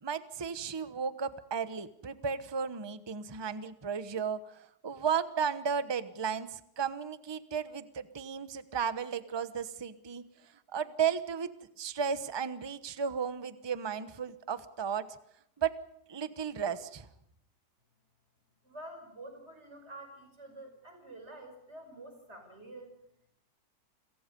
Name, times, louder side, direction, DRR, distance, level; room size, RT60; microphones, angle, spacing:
voice 1, 0.0-10.3 10.7-11.5 11.8-15.1 15.6-15.7 16.1-17.1, right 7 dB, 20° right, 12 dB, 0.8 m, -34 dB
voice 2, 18.6-22.9, right 1 dB, 35° right, 5 dB, 5.8 m, -48 dB
29.5 x 23.0 x 5.4 m, 0.72 s
omnidirectional pair, 1.9 m